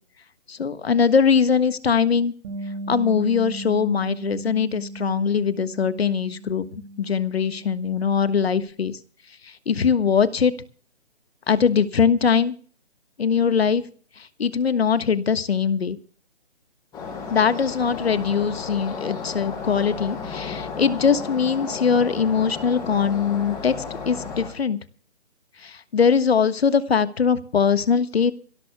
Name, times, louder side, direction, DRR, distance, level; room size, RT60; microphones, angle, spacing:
voice 1, 0.5-2.3 2.9-6.7 7.0-9.0 9.7-10.5 11.5-12.5 13.2-13.8 14.4-16.0 17.3-23.7 24.0-24.8 25.6-28.3, left 6 dB, 65° left, 12 dB, 1.4 m, -21 dB
Bass guitar, 2.4-8.7, right 1 dB, 35° right, 2.2 m, -37 dB
sound 1, 16.9-24.5, left 5 dB, 10° left, 6.5 m, -33 dB
25.5 x 16.5 x 2.3 m, 0.43 s
figure-of-eight pair, 150°, 34 cm